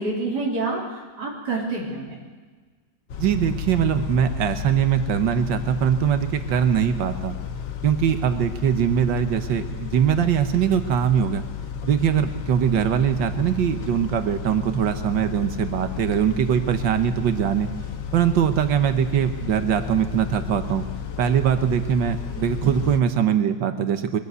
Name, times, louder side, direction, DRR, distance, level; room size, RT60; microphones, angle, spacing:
voice 1, 0.0-2.2, right 3 dB, 65° right, -4 dB, 4.1 m, -27 dB
Car / Idling / Accelerating revving vroom, 3.1-23.0, left 7 dB, 80° left, 1.8 m, -33 dB
voice 2, 3.2-7.4 7.8-11.4 11.8-17.7 18.1-20.9 21.2-24.2, right 8 dB, 90° right, 8 dB, 1.7 m, -22 dB
22.5 x 15.5 x 8.1 m, 1.4 s
omnidirectional pair, 1.9 m